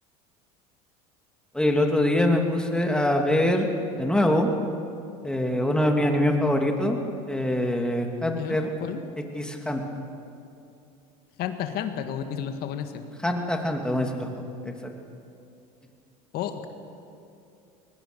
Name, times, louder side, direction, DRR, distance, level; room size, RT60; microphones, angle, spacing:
voice 1, 1.5-3.7 4.0-4.5 5.2-7.0 7.3-8.7 9.3-9.8 13.2-14.3, left 1 dB, 5° left, 2 dB, 2.6 m, -23 dB
voice 2, 8.3-9.0 11.4-13.0 16.3-16.7, left 9 dB, 60° left, 7 dB, 1.9 m, -32 dB
22.0 x 19.5 x 6.9 m, 2.6 s
supercardioid pair, 100°, 18 cm